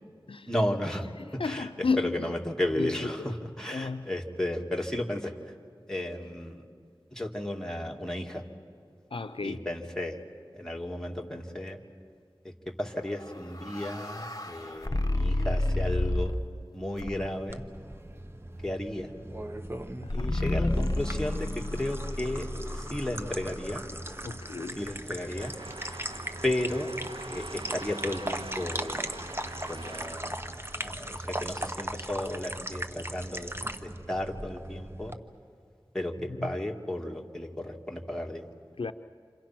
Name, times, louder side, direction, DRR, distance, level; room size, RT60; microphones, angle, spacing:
voice 1, 0.5-1.1 1.3-1.7 2.0-5.3 5.9-6.7 7.1-8.4 9.4-10.2 10.5-11.8 12.4-16.4 16.7-17.6 18.6-19.1 20.1-22.5 22.7-23.8 24.8-25.5 26.4-26.9 27.3-29.1 29.7-30.4 30.8-33.5 33.8-35.1 35.9-38.4, left 1 dB, 5° left, 1 dB, 2.4 m, -33 dB
voice 2, 1.2-2.4 2.8-3.4 3.7-4.1 9.1-9.7 20.0-20.3 24.2-24.9 36.3-36.6 38.8-38.9, left 4 dB, 75° left, 10 dB, 0.5 m, -33 dB
sound 1, 13.2-16.5 17.0-17.5 20.1-24.2, left 1 dB, 40° left, 1.4 m, -31 dB
sound 2, 17.5-35.1, right 1 dB, 25° right, 1.1 m, -39 dB
sound 3, 25.3-31.1, right 2 dB, 65° right, 0.9 m, -44 dB
28.5 x 27.0 x 6.0 m, 2.1 s
wide cardioid pair, 40°, 9 cm